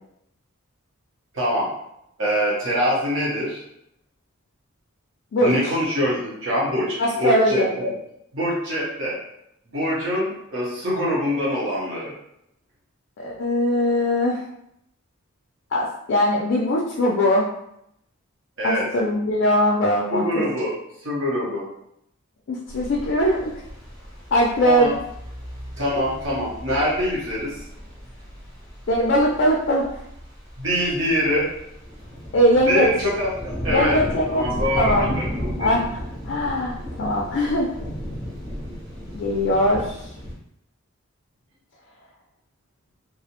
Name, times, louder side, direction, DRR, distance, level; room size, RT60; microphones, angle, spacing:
voice 1, 1.3-1.7 2.2-3.6 5.4-7.9 8.3-9.2 9.7-12.1 18.6-18.8 20.1-20.7 21.0-21.6 24.6-24.9 25.8-27.5 30.6-31.5 32.7-34.0 34.3-35.7, equal, 55° right, -6 dB, 0.8 m, -24 dB
voice 2, 7.0-7.7 13.2-14.4 15.7-17.5 18.6-20.4 22.5-23.5 24.3-24.9 28.9-29.8 32.3-32.9 33.7-34.5 34.8-35.1 35.6-37.7 39.1-40.0, equal, 50° left, -3 dB, 0.3 m, -21 dB
sound 1, 22.7-40.4, equal, 15° right, 0.5 m, -34 dB
2.3 x 2.0 x 2.8 m, 0.77 s
head